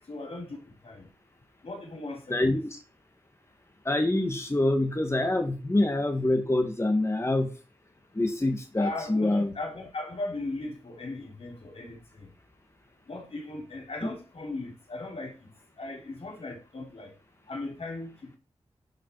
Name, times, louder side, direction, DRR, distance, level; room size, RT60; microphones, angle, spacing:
voice 1, 0.1-1.1 1.6-2.6 8.8-12.3 13.1-15.3 15.8-17.1 17.5-18.4, left 2 dB, 60° left, 4.0 m, -38 dB
voice 2, 2.3-2.8 3.9-7.5 8.1-9.5, left 1 dB, 25° left, 2.1 m, -26 dB
11.5 x 6.0 x 4.9 m
cardioid pair, 50°, 11 cm